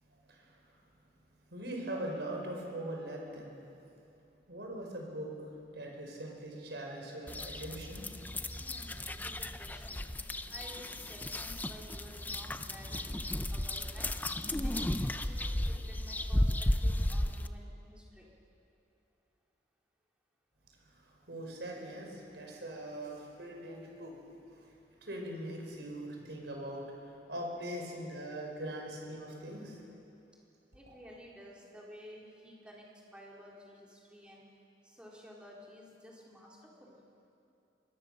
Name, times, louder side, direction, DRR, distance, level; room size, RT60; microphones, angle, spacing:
voice 1, 1.5-3.5 4.5-5.3 5.7-8.2 20.9-24.2 24.6-24.7 25.0-29.8, right 1 dB, 70° right, 0 dB, 5.3 m, -41 dB
sound 1, 7.3-17.5, left 1 dB, 10° left, 0.5 m, -34 dB
voice 2, 8.6-10.0 10.5-13.1 13.5-14.1 14.6-18.3 30.7-34.4 34.8-37.0, equal, 5° right, -4 dB, 3.9 m, -53 dB
24.5 x 21.5 x 6.8 m, 2.7 s
head